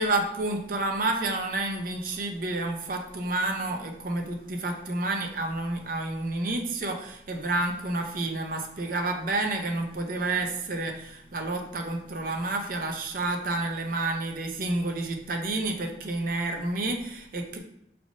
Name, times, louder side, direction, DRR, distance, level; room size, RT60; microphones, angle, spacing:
voice 1, 0.0-17.6, right 2 dB, 50° right, 3 dB, 0.5 m, -30 dB
6.2 x 3.3 x 2.6 m, 0.76 s
head